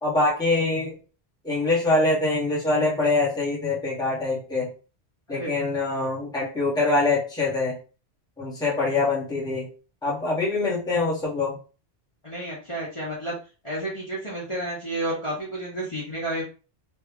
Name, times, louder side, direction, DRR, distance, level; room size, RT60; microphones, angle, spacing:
voice 1, 0.0-1.0 1.4-4.7 5.3-7.8 8.4-9.7 10.0-11.6, left 2 dB, 5° left, -6 dB, 1.1 m, -24 dB
voice 2, 12.2-13.3 13.6-16.4, right 1 dB, 30° left, -7 dB, 1.1 m, -31 dB
3.0 x 2.4 x 3.5 m, 0.35 s
omnidirectional pair, 1.2 m